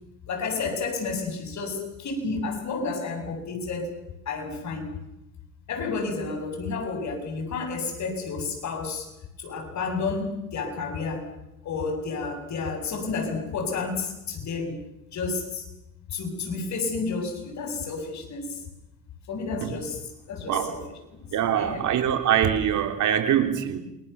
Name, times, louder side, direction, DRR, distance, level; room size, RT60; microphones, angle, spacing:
voice 1, 0.3-3.9 4.3-5.0 5.7-9.1 9.4-11.3 11.6-14.8 15.1-15.7 16.1-18.6 19.3-20.0 20.3-20.8 21.6-21.8, left 4 dB, 65° left, 7.8 m, -31 dB
voice 2, 21.3-23.8, right 9 dB, 75° right, 3.5 m, -23 dB
28.0 x 23.0 x 7.1 m
cardioid pair, 90°, 30 cm